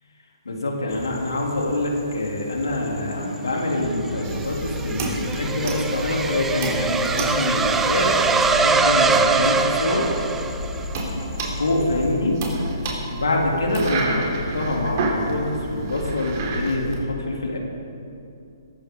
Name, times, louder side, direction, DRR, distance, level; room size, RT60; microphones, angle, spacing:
voice 1, 0.4-10.0 11.5-12.4 13.1-17.6, left 2 dB, 85° left, -1 dB, 3.3 m, -25 dB
sound 1, 0.9-12.1, equal, 65° left, 2.9 m, -40 dB
sound 2, 3.9-10.9, right 4 dB, 10° right, 0.7 m, -23 dB
sound 3, 4.2-17.0, right 2 dB, 45° right, 3.4 m, -30 dB
21.5 x 12.0 x 4.0 m, 2.6 s
hypercardioid pair, 135°, 2 cm